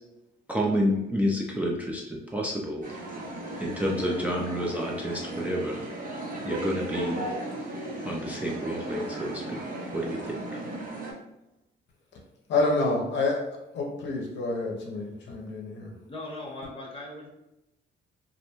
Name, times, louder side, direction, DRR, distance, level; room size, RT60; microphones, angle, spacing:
voice 1, 0.5-2.8 3.6-6.1 6.4-7.2 8.0-9.6 9.9-10.6, equal, 5° right, -2 dB, 0.4 m, -29 dB
sound 1, 2.8-11.1, right 1 dB, 45° right, 0.7 m, -35 dB
voice 2, 12.5-13.4 13.7-16.0, left 2 dB, 65° left, 0 dB, 0.6 m, -28 dB
voice 3, 16.1-17.3, left 2 dB, 30° left, -1 dB, 0.9 m, -39 dB
2.5 x 2.1 x 2.9 m, 0.90 s
cardioid pair, 90°, 20 cm